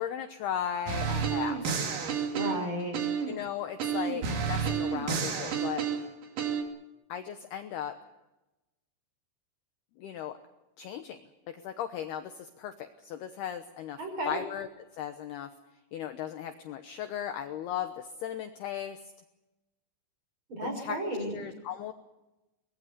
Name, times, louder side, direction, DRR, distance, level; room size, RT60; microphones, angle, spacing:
voice 1, 0.0-1.8 3.3-5.9 7.1-7.9 10.0-10.4 10.8-11.2 11.5-14.0 14.3-15.5 15.9-19.0 20.6-21.0 21.3-21.9, left 9 dB, 80° left, 8 dB, 2.3 m, -36 dB
sound 1, 0.9-3.4 3.8-6.6, right 6 dB, 50° right, 3.3 m, -30 dB
voice 2, 2.3-3.1 14.0-14.4 20.5-21.3, right 1 dB, 25° right, 4 dB, 5.6 m, -33 dB
23.5 x 21.0 x 6.9 m, 1.0 s
omnidirectional pair, 6.0 m